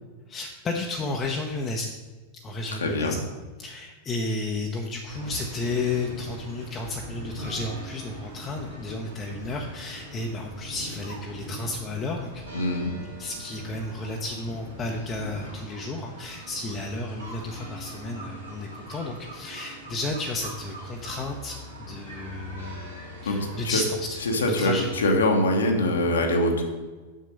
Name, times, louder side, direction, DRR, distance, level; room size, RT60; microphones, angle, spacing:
voice 1, 0.3-1.9 2.3-3.2 3.6-12.4 13.2-23.0 23.2-24.2 24.5-24.9, left 2 dB, 25° left, 1 dB, 0.8 m, -32 dB
voice 2, 2.8-3.2 12.5-12.9 23.3-23.4 24.3-26.6, left 1 dB, 70° left, 3 dB, 1.2 m, -23 dB
sound 1, 5.1-25.0, equal, 80° right, 2.8 m, -41 dB
7.6 x 6.4 x 5.3 m, 1.3 s
figure-of-eight pair, 90°, 0 cm